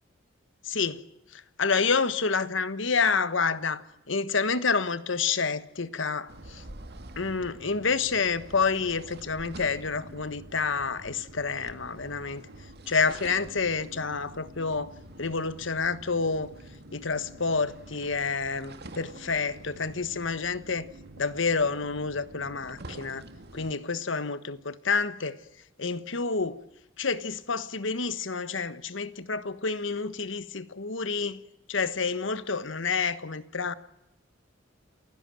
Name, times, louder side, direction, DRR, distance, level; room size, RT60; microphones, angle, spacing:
voice 1, 0.6-1.0 1.3-6.6 7.2-12.4 12.9-16.5 16.9-20.9 21.2-23.2 23.5-25.4 25.8-26.6 27.0-31.4 31.7-33.7, left 4 dB, 70° left, 1.3 m, -29 dB
sound 1, 6.3-23.7, right 1 dB, 55° right, 2.3 m, -47 dB
28.5 x 16.5 x 7.7 m
head